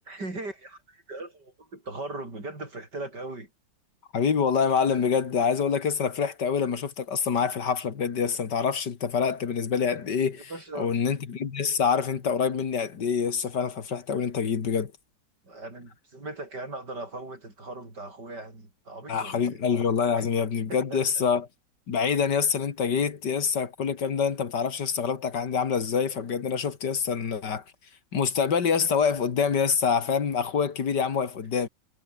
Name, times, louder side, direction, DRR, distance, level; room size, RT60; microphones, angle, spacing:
voice 1, 0.1-3.5 10.5-10.9 15.4-19.6 20.2-20.3 20.7-21.0, right 2 dB, 65° right, 7.3 m, -39 dB
voice 2, 4.1-10.5 10.8-14.9 19.1-21.5 21.9-27.6 28.1-31.7, left 6 dB, 70° left, 2.5 m, -26 dB
omnidirectional pair, 1.9 m